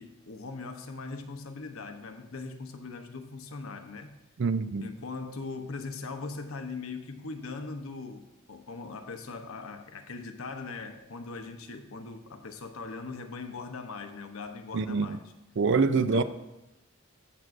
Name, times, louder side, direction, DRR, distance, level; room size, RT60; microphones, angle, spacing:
voice 1, 0.0-4.1 4.8-15.2 15.9-16.2, left 3 dB, 90° left, 0.9 m, -40 dB
voice 2, 4.4-4.9 14.7-15.2 15.6-16.2, right 4 dB, 60° right, 0.4 m, -25 dB
14.0 x 6.1 x 2.6 m
head